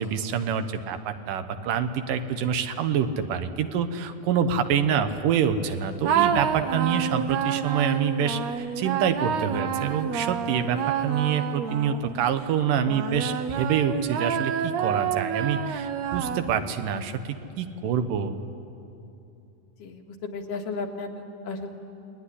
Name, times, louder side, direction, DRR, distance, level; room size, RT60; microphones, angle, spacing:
voice 1, 0.0-17.2 17.6-18.4, right 7 dB, 85° right, 9 dB, 2.8 m, -26 dB
sound 1, 6.0-12.3 12.9-16.8, right 8 dB, 70° right, 1.9 m, -28 dB
voice 2, 19.8-21.7, left 3 dB, 80° left, 2 dB, 3.5 m, -34 dB
28.5 x 20.5 x 10.0 m, 2.8 s
omnidirectional pair, 3.8 m